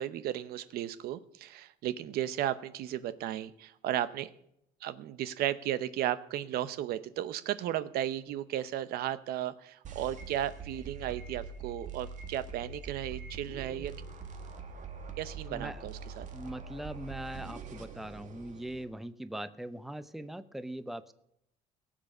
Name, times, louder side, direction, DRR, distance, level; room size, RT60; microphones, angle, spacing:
voice 1, 0.0-4.3 4.8-13.9 15.2-16.3, right 12 dB, 75° right, 14 dB, 0.8 m, -35 dB
sound 1, 9.8-18.8, right 5 dB, 50° right, 1.9 m, -44 dB
voice 2, 15.5-15.8 16.3-21.1, right 1 dB, ahead, 13 dB, 0.7 m, -41 dB
17.5 x 7.5 x 6.5 m, 0.76 s
cardioid pair, 110°, 16 cm